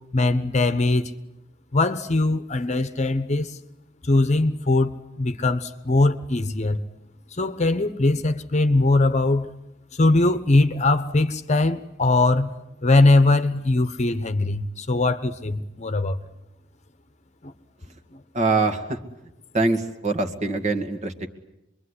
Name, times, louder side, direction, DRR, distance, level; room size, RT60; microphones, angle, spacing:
voice 1, 0.1-1.1 1.7-3.6 4.0-6.8 7.3-9.5 9.9-12.5 12.8-16.2 17.4-17.5 18.1-18.2, left 2 dB, 35° left, 1.1 m, -21 dB
voice 2, 18.3-19.0 19.5-21.3, right 3 dB, 35° right, 2.1 m, -23 dB
26.5 x 22.5 x 10.0 m
head